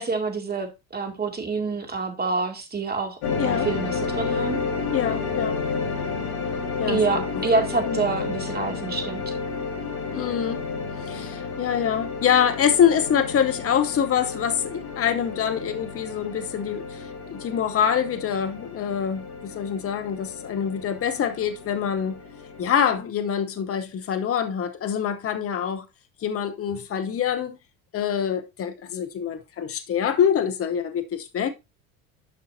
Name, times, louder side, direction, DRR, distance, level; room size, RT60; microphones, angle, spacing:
voice 1, 0.0-3.2 3.4-4.6 6.9-9.3, right 4 dB, 20° right, 2.4 m, -27 dB
sound 1, 3.2-23.0, left 4 dB, 75° left, 2.5 m, -31 dB
voice 2, 3.3-3.7 4.9-5.6 6.8-7.4 7.9-8.0 10.1-10.6 11.0-22.2 22.6-25.9 26.2-27.6 27.9-31.5, left 8 dB, 30° left, 1.1 m, -25 dB
11.0 x 5.6 x 2.7 m
hypercardioid pair, 75°, 42 cm